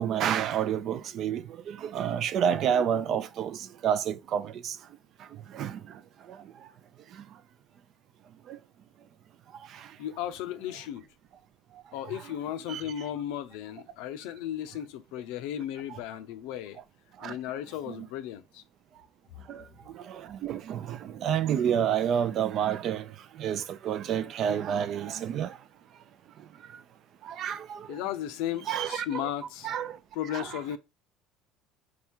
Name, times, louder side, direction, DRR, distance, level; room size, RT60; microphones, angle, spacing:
voice 1, 0.0-4.8 5.5-5.8 8.5-8.6 12.1-12.3 12.7-12.8 15.9-16.0 17.2-17.4 17.9-18.1 19.5-19.6 19.9-23.1 23.4-25.6 27.2-27.9 28.7-29.3 29.6-30.0 30.3-30.6, right 9 dB, 50° right, 0.4 m, -29 dB
voice 2, 10.0-11.0 11.9-16.8 17.2-18.6 27.9-29.7 30.1-30.8, left 11 dB, 80° left, 0.5 m, -35 dB
3.6 x 2.3 x 4.4 m
supercardioid pair, 115°, 0 cm